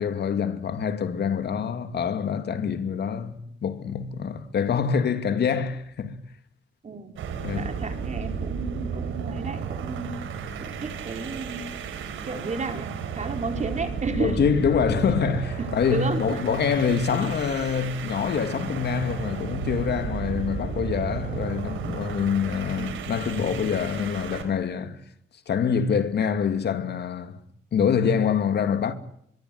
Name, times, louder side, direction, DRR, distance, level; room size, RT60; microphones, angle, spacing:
voice 1, 0.0-6.2 7.4-7.7 14.2-25.0 25.5-27.4 27.7-28.9, left 6 dB, 55° left, 2.6 m, -25 dB
sound 1, 7.1-24.5, right 6 dB, 80° right, 4.7 m, -33 dB
voice 2, 7.5-10.1 10.6-11.7 12.2-14.5 15.6-16.6 21.8-22.0 22.7-23.0, right 3 dB, 35° right, 4.9 m, -32 dB
24.0 x 23.0 x 8.0 m
cardioid pair, 90°, 20 cm